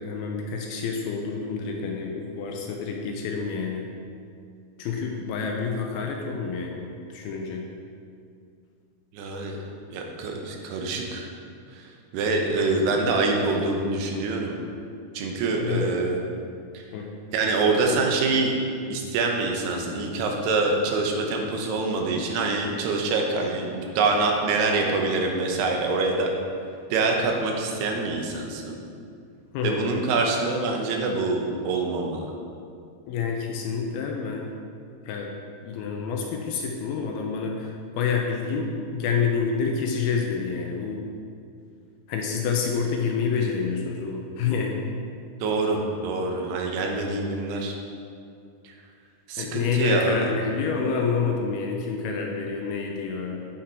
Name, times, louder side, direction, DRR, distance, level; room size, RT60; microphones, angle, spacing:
voice 1, 0.0-3.9 4.8-7.7 12.5-12.7 15.5-15.8 16.9-17.1 29.5-29.9 33.1-34.5 35.1-35.3 35.6-41.0 42.1-44.8 49.4-53.5, left 5 dB, 80° left, 1 dB, 2.4 m, -28 dB
voice 2, 9.1-9.6 9.9-11.3 11.7-14.6 15.1-16.2 16.7-16.9 17.3-18.5 18.9-26.3 26.9-28.8 29.6-32.3 45.4-47.8 48.6-48.8 49.3-50.2, right 3 dB, 80° right, 2 dB, 2.8 m, -25 dB
8.6 x 5.8 x 4.4 m, 2.4 s
omnidirectional pair, 4.8 m